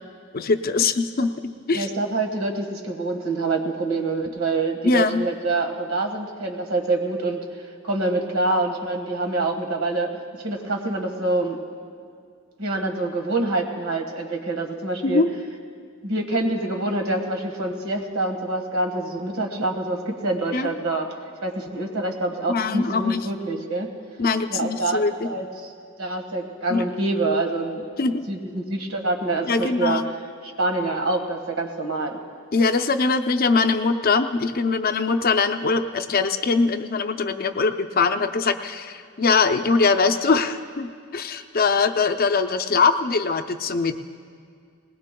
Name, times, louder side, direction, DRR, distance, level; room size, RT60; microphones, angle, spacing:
voice 1, 0.3-1.3 1.7-1.9 4.8-5.3 15.0-15.3 20.5-20.7 22.5-23.3 24.2-25.3 26.7-26.8 28.0-28.3 29.5-30.0 32.5-44.0, left 4 dB, 45° left, 8 dB, 0.5 m, -22 dB
voice 2, 1.7-7.4 7.8-11.6 12.6-15.2 16.0-21.1 21.4-23.9 24.5-25.7 26.0-27.8 28.3-30.0 30.4-32.2, right 2 dB, 80° right, 3 dB, 1.6 m, -26 dB
20.0 x 19.5 x 2.3 m, 2.2 s
head